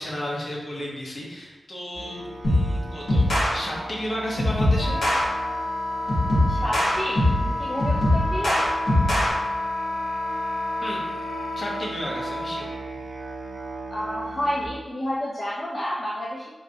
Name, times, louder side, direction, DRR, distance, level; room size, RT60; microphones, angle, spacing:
voice 1, 0.0-4.9 10.8-11.0 11.6-12.7, equal, 45° left, -4 dB, 0.8 m, -33 dB
Musical instrument, 1.9-14.7, right 2 dB, 45° right, 0.7 m, -39 dB
sound 1, 2.4-2.7 3.1-3.5 4.4-5.2 6.1-7.5 7.8-9.3, left 1 dB, 65° left, 1.2 m, -21 dB
Wind instrument woodwind instrument, 4.8-12.6, left 1 dB, 80° left, 0.5 m, -30 dB
voice 2, 6.5-8.6 13.9-16.5, equal, 30° left, -5 dB, 0.4 m, -30 dB
4.0 x 3.1 x 2.6 m, 1.1 s
wide cardioid pair, 150°, 0 cm